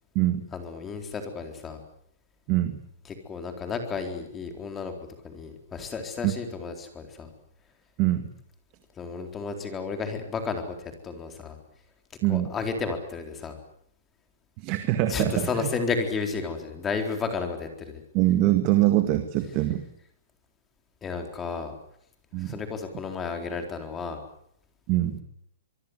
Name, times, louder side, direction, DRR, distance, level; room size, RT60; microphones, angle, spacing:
voice 1, 0.5-1.8 3.1-4.9 5.2-7.3 9.0-11.6 12.3-13.6 15.1-18.0 21.0-21.7 22.4-24.2, left 4 dB, 10° left, 5 dB, 4.0 m, -32 dB
voice 2, 2.5-2.8 6.2-6.3 8.0-8.3 12.2-12.5 14.6-15.5 18.1-19.8 22.3-22.5 24.9-25.2, right 15 dB, 30° right, 8 dB, 1.9 m, -23 dB
25.5 x 23.0 x 8.1 m, 0.70 s
hypercardioid pair, 165°, 0 cm